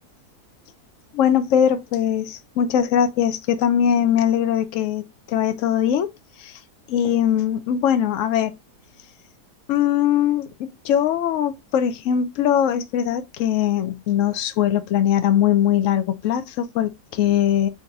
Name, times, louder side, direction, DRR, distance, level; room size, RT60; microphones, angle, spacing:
voice 1, 1.1-6.1 6.5-6.6 6.9-8.5 9.7-17.7, left 9 dB, 70° left, 0.7 m, -21 dB
4.0 x 2.5 x 4.5 m
omnidirectional pair, 1.7 m